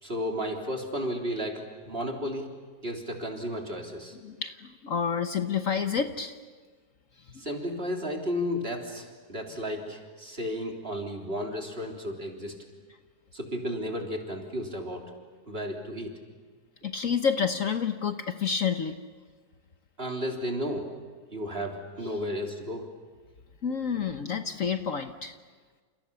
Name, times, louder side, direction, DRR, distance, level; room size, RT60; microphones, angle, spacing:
voice 1, 0.0-2.5 2.8-4.2 7.4-12.5 13.3-15.1 15.5-16.1 20.0-20.9 21.3-22.9, equal, 35° right, 1 dB, 3.8 m, -33 dB
voice 2, 4.2-6.3 16.8-19.0 23.6-25.3, left 6 dB, 55° left, 7 dB, 1.4 m, -29 dB
30.0 x 29.0 x 7.0 m, 1.5 s
omnidirectional pair, 1.8 m